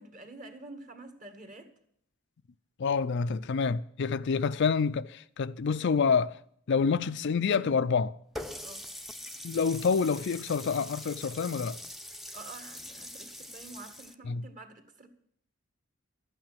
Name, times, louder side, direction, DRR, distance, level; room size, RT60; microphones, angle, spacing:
voice 1, 0.0-1.7 8.6-8.9 12.3-15.1, right 2 dB, 40° right, 1.8 m, -48 dB
voice 2, 2.8-6.4 6.7-8.2 9.4-11.8 14.3-14.4, left 5 dB, 60° left, 0.4 m, -27 dB
Water tap faucet, 8.4-14.1, left 1 dB, ahead, 0.7 m, -43 dB
12.5 x 9.0 x 7.5 m
head